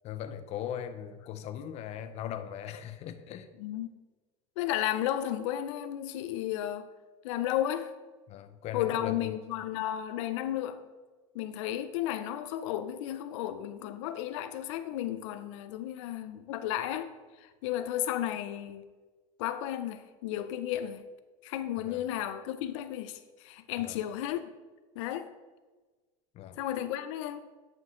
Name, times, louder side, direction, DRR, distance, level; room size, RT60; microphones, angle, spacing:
voice 1, 0.0-3.5 8.3-9.4 21.8-22.1 23.8-24.0 26.3-26.6, left 9 dB, 45° left, 0.7 m, -39 dB
voice 2, 3.6-3.9 4.6-6.9 7.2-7.9 8.7-10.8 11.3-17.1 17.4-18.8 19.4-21.0 21.4-24.5 25.0-25.3 26.6-27.4, left 12 dB, 85° left, 0.5 m, -33 dB
9.7 x 6.2 x 3.7 m
supercardioid pair, 135°, 15 cm